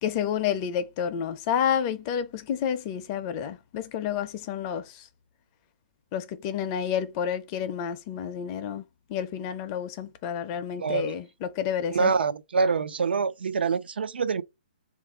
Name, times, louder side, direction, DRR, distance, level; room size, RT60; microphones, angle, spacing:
voice 1, 0.0-5.1 6.1-8.8 9.1-12.1, left 8 dB, 25° left, 0.4 m, -30 dB
voice 2, 10.8-11.1 11.9-14.4, right 5 dB, 85° right, 0.4 m, -25 dB
3.5 x 2.5 x 4.4 m
hypercardioid pair, 160°, 5 cm